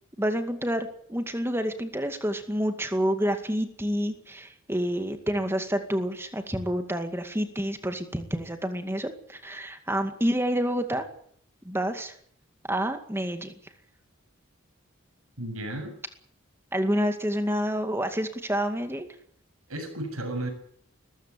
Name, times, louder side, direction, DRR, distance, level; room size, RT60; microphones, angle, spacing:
voice 1, 0.2-11.0 11.6-12.1 12.7-13.5 16.7-19.1, equal, 10° right, 7 dB, 2.1 m, -28 dB
voice 2, 15.4-15.9 19.7-20.5, right 1 dB, 85° right, 6 dB, 7.2 m, -33 dB
21.0 x 15.0 x 9.8 m, 0.64 s
head